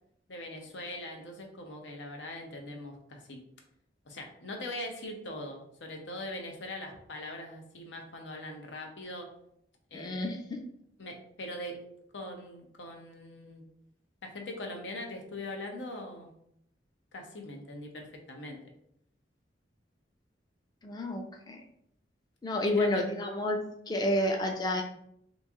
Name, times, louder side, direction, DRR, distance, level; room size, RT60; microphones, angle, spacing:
voice 1, 0.3-3.4 4.0-9.3 9.9-10.3 11.0-11.8 12.1-13.6 14.2-16.3 17.1-18.6 22.6-23.1, left 1 dB, 90° left, 2 dB, 0.7 m, -41 dB
voice 2, 9.9-10.6 20.8-21.6 22.4-24.8, left 1 dB, 25° left, 3 dB, 0.4 m, -30 dB
3.0 x 2.6 x 3.5 m, 0.72 s
head